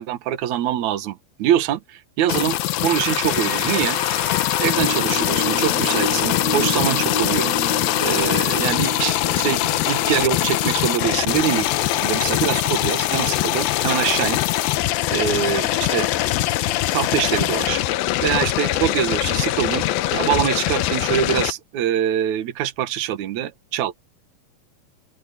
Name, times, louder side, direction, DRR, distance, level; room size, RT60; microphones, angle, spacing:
voice 1, 0.0-4.0 4.6-7.6 8.0-11.7 12.0-14.4 15.1-16.1 16.9-17.8 18.2-19.9 20.1-24.0, right 10 dB, 60° right, 2.4 m, -24 dB
sound 1, 2.3-21.5, left 15 dB, 80° left, 2.6 m, -22 dB
sound 2, 2.8-13.7, left 2 dB, 45° left, 7.7 m, -31 dB
open air
omnidirectional pair, 4.3 m